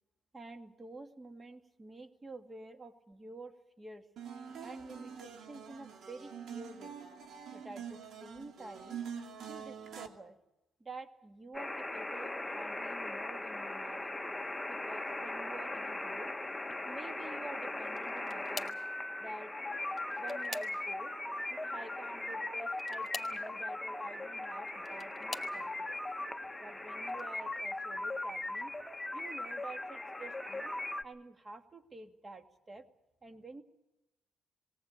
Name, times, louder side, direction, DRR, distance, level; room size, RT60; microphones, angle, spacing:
voice 1, 0.3-4.1 4.6-7.0 7.5-9.0 9.5-10.4 10.8-14.2 14.7-16.3 16.8-18.8 19.2-19.5 20.2-21.1 21.5-26.0 26.6-28.7 29.1-30.7 31.0-32.8 33.2-33.6, right 2 dB, 25° right, 6 dB, 2.2 m, -49 dB
sound 1, 4.2-10.1, right 7 dB, 70° right, 2.7 m, -45 dB
sound 2, 11.5-31.0, left 2 dB, 10° left, 1.2 m, -39 dB
sound 3, 17.9-18.9 19.8-21.1 22.7-23.4 24.5-25.6 26.3-26.7 27.1-27.2 28.6-28.7, left 4 dB, 30° left, 2.3 m, -45 dB
20.0 x 18.0 x 9.0 m, 0.90 s
cardioid pair, 90°, 0 cm